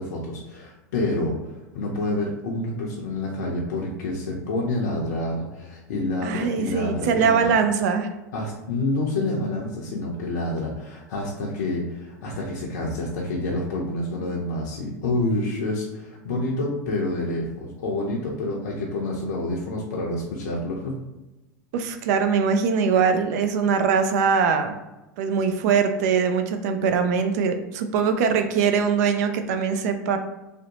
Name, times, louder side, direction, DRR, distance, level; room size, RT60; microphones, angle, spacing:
voice 1, 0.0-7.6 8.3-20.9, left 2 dB, 70° left, -2 dB, 0.5 m, -28 dB
voice 2, 6.2-8.1 21.7-24.8 25.2-30.2, right 6 dB, 65° right, 7 dB, 0.4 m, -22 dB
2.6 x 2.1 x 2.8 m, 1.0 s
hypercardioid pair, 100°, 10 cm